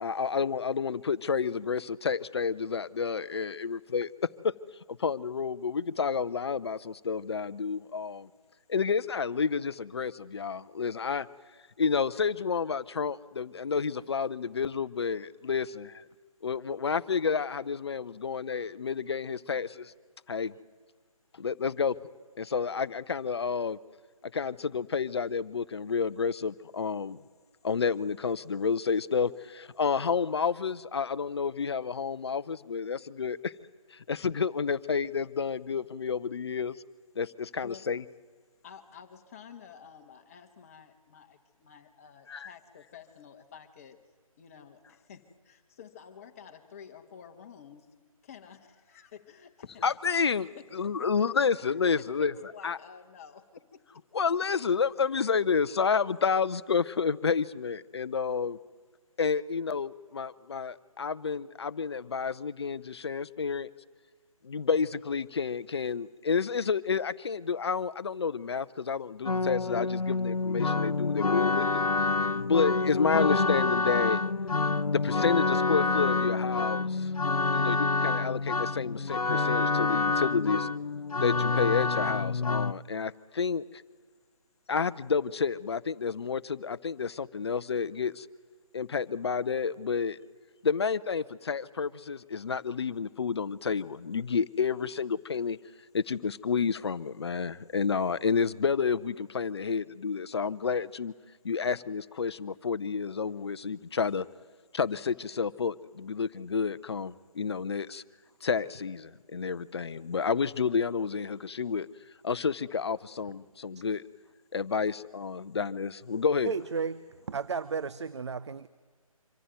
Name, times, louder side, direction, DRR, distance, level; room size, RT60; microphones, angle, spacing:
voice 1, 0.0-4.1 4.4-4.5 4.9-8.3 8.7-11.3 11.8-16.0 16.4-19.9 20.3-20.5 21.4-22.0 22.4-23.8 24.3-27.2 27.6-33.5 33.9-36.8 37.2-38.0 42.3-42.5 49.8-52.3 52.6-52.8 54.1-58.6 59.2-63.7 64.4-71.6 72.3-74.2 74.9-77.1 77.5-80.7 81.2-83.6 84.7-88.3 88.7-90.2 90.6-95.6 95.9-101.1 101.4-104.3 104.7-108.0 108.4-111.9 112.2-114.0 114.5-116.6, left 5 dB, 45° left, 0.7 m, -30 dB
voice 2, 38.6-44.0 44.4-48.0 48.2-49.9 50.6-51.1 51.4-51.5 52.0-53.8, left 7 dB, 25° left, 1.4 m, -50 dB
sound 1, 69.2-82.7, left 3 dB, 80° left, 0.7 m, -27 dB
voice 3, 116.4-118.7, right 6 dB, 50° right, 0.6 m, -33 dB
25.0 x 15.0 x 9.4 m
figure-of-eight pair, 150°, 19 cm